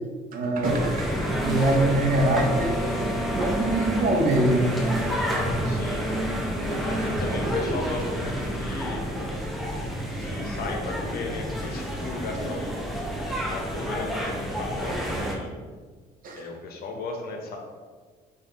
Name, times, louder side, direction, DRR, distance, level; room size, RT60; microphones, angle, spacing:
voice 1, 0.3-1.1 1.4-4.8 16.2-16.4, right 1 dB, 55° right, 1 dB, 0.7 m, -24 dB
sound 1, 0.6-15.3, equal, ahead, 0.6 m, -29 dB
voice 2, 5.6-6.1 6.8-9.0 10.2-12.8 13.3-15.5 16.3-17.6, left 3 dB, 65° left, 2 dB, 0.7 m, -36 dB
4.9 x 2.5 x 2.9 m, 1.5 s
cardioid pair, 110°, 17 cm